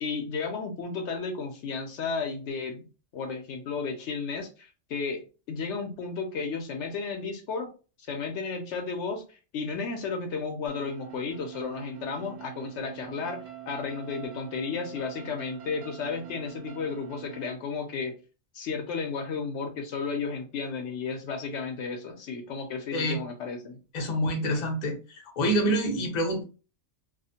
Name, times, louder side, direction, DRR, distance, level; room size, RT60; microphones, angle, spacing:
voice 1, 0.0-2.8 3.1-7.7 8.1-18.1 18.5-23.8, left 5 dB, 75° left, 4 dB, 0.8 m, -33 dB
sound 1, 10.7-17.5, right 11 dB, 65° right, 0.8 m, -44 dB
voice 2, 23.9-26.4, equal, 45° left, 2 dB, 0.7 m, -27 dB
2.4 x 2.0 x 2.7 m, 0.34 s
omnidirectional pair, 1.2 m